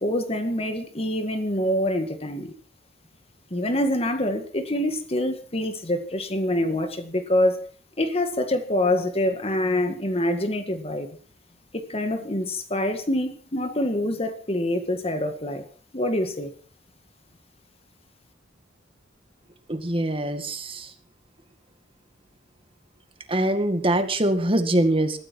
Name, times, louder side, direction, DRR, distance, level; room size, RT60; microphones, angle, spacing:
voice 1, 0.0-2.6 3.5-7.7 8.0-11.1 11.7-15.6 15.9-16.5, left 1 dB, 30° left, 1.9 m, -25 dB
voice 2, 19.7-20.9 23.3-25.2, right 1 dB, 30° right, 2.1 m, -23 dB
20.5 x 14.0 x 4.6 m
head